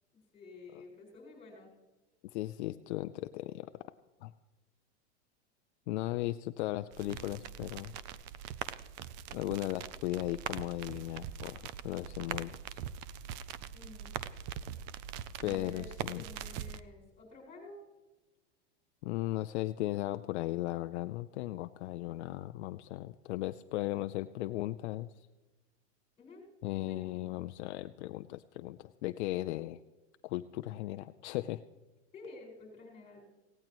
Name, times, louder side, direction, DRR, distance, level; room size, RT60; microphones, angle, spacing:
voice 1, 0.3-1.7 13.7-14.1 15.4-15.9 16.1-17.8 26.2-26.5 26.7-27.0 32.1-33.2, left 3 dB, 20° left, -1 dB, 5.4 m, -51 dB
voice 2, 2.3-3.7 4.2-4.3 5.9-7.9 9.3-12.8 15.4-16.2 19.0-25.1 26.6-29.8 30.2-31.6, left 16 dB, 65° left, 10 dB, 0.6 m, -36 dB
sound 1, 6.9-16.8, right 9 dB, 40° right, 0.5 m, -42 dB
18.5 x 17.0 x 3.1 m, 1.1 s
supercardioid pair, 155°, 36 cm